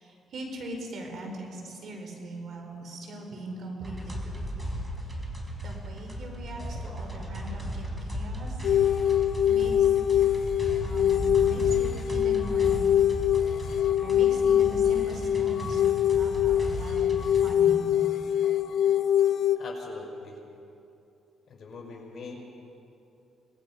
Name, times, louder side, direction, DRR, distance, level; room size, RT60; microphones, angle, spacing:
voice 1, 0.0-4.8 5.6-9.0 9.5-9.9 10.8-13.0 14.0-17.8, right 1 dB, 65° right, 2 dB, 4.7 m, -41 dB
sound 1, 3.8-17.5, right 1 dB, 20° right, 4.4 m, -36 dB
sound 2, 8.6-19.6, left 10 dB, 65° left, 1.2 m, -24 dB
voice 2, 19.6-20.4 21.5-22.4, left 3 dB, 45° left, 0 dB, 5.7 m, -42 dB
25.0 x 19.5 x 5.8 m, 2.8 s
cardioid pair, 90°, 0 cm